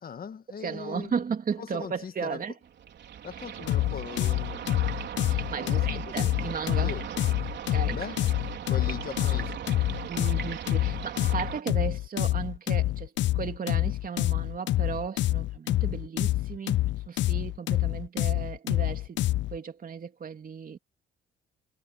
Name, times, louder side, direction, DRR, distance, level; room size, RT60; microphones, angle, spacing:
voice 1, 0.0-1.1 1.6-2.4 3.2-4.7 5.5-6.3 6.8-7.0 7.9-8.2 8.7-9.6, left 7 dB, 50° left, 1.5 m, -40 dB
voice 2, 0.6-2.5 5.2-6.9 7.7-8.0 10.1-16.8 17.1-19.2 19.5-20.8, right 6 dB, 45° right, 2.9 m, -35 dB
sound 1, 2.6-11.6, right 9 dB, 65° right, 4.4 m, -38 dB
sound 2, 3.7-19.6, left 15 dB, 65° left, 0.5 m, -27 dB
cardioid pair, 90°, 20 cm